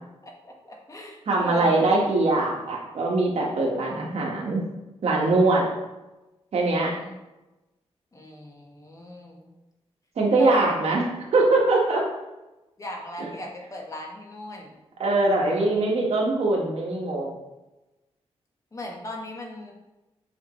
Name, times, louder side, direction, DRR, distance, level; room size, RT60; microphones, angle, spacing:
voice 1, 0.2-2.0 5.7-5.8 6.9-7.2 8.1-9.5 10.4-10.9 12.8-14.8 18.7-19.7, left 1 dB, 30° left, 0 dB, 1.4 m, -37 dB
voice 2, 1.3-4.6 5.0-5.7 6.5-7.0 10.1-12.1 13.2-13.3 15.0-17.3, right 2 dB, 70° right, -2 dB, 1.5 m, -22 dB
7.7 x 4.8 x 3.2 m, 1.0 s
wide cardioid pair, 110°, 11 cm